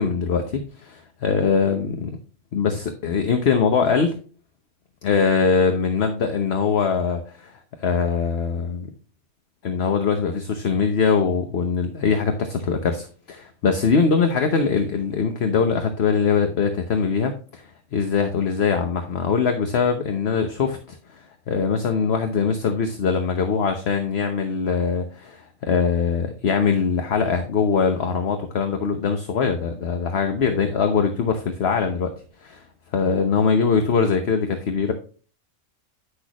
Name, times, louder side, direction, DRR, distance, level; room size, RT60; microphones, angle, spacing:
voice 1, 0.0-2.1 2.5-4.1 5.0-7.5 7.8-8.9 9.6-32.1 32.4-32.6 32.9-34.9, left 5 dB, 60° left, 6 dB, 1.1 m, -22 dB
10.0 x 6.3 x 3.0 m, 0.39 s
omnidirectional pair, 1.3 m